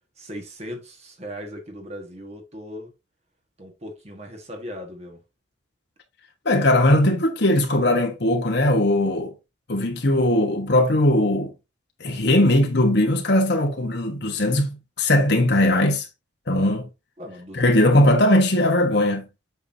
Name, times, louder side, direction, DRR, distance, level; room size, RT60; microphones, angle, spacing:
voice 1, 0.2-2.9 3.6-5.2 17.2-17.7, equal, 35° right, 1.6 m, -38 dB
voice 2, 6.4-9.3 9.7-11.5 12.0-16.1 16.5-16.9 17.5-19.2, left 1 dB, 60° left, 1.2 m, -19 dB
8.2 x 5.8 x 2.7 m
head